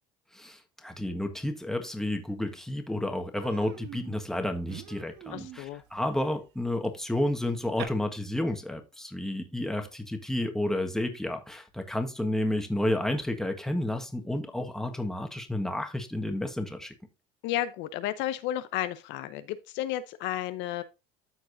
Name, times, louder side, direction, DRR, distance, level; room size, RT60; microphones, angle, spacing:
voice 1, 0.3-16.9, left 1 dB, ahead, 1.6 m, -31 dB
Human voice, 2.3-2.4 2.7-2.9 3.3-7.8, right 10 dB, 55° right, 1.3 m, -46 dB
voice 2, 5.3-5.8 17.4-20.8, left 13 dB, 65° left, 0.7 m, -32 dB
13.0 x 4.7 x 2.6 m
supercardioid pair, 85°, 20 cm